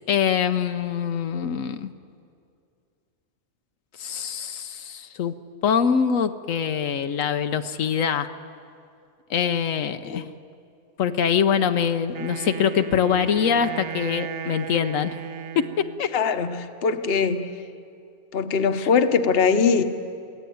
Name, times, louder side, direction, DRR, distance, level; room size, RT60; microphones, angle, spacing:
voice 1, 0.1-1.9 4.0-5.3 5.6-8.3 9.3-10.3 11.0-15.2 15.6-16.1 18.8-18.9, left 7 dB, 80° left, 9 dB, 1.1 m, -24 dB
Wind instrument woodwind instrument, 12.1-16.1, right 6 dB, 55° right, 0.9 m, -35 dB
voice 2, 16.1-17.5 18.3-19.8, left 5 dB, 50° left, 9 dB, 1.1 m, -21 dB
23.0 x 16.5 x 9.3 m, 2.4 s
omnidirectional pair, 1.3 m